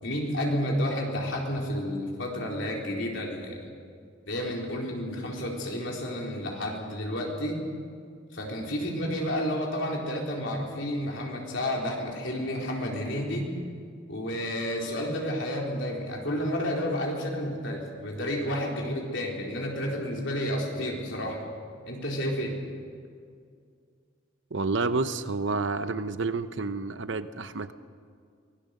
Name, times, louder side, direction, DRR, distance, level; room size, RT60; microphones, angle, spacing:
voice 1, 0.0-3.6 4.3-7.6 8.3-13.5 14.1-21.4 21.9-22.6, equal, 65° left, -1 dB, 4.1 m, -31 dB
voice 2, 24.5-27.7, right 3 dB, 65° right, 12 dB, 0.8 m, -29 dB
24.0 x 18.0 x 6.6 m, 2.2 s
head